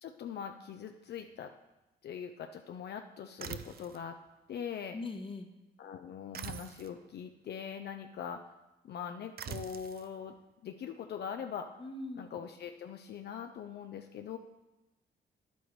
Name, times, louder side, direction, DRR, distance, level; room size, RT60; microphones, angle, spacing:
voice 1, 0.0-1.5 2.0-4.2 4.5-5.0 5.8-8.4 8.8-10.3 10.6-11.8 12.2-14.4, left 8 dB, 60° left, 5 dB, 0.5 m, -42 dB
sound 1, 3.4-4.1 6.3-7.0 9.4-10.1, right 9 dB, 55° right, 0.5 m, -43 dB
voice 2, 4.9-5.5 11.8-12.3, left 2 dB, 30° left, 6 dB, 0.9 m, -41 dB
10.0 x 8.3 x 3.2 m, 1.0 s
cardioid pair, 80°, 19 cm